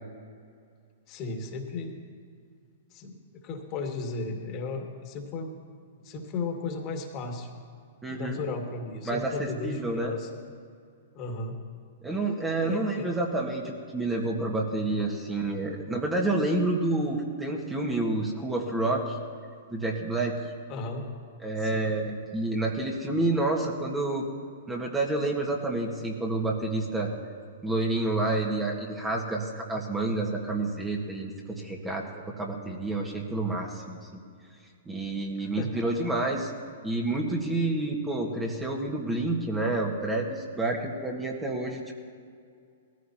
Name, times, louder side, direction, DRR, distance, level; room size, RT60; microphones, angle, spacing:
voice 1, 1.1-2.0 2.9-5.6 6.0-7.5 8.1-10.3 11.1-11.6 12.6-13.1 20.7-21.1 21.6-21.9 35.6-35.8, left 3 dB, 35° left, 2 dB, 2.2 m, -35 dB
voice 2, 8.0-8.4 9.0-10.1 12.0-19.2 19.7-20.4 21.4-24.2 24.7-27.1 27.6-32.0 32.4-34.2 34.9-36.5 36.8-41.9, right 2 dB, 10° right, 0 dB, 1.8 m, -29 dB
20.5 x 14.5 x 3.0 m, 2.3 s
hypercardioid pair, 110°, 0 cm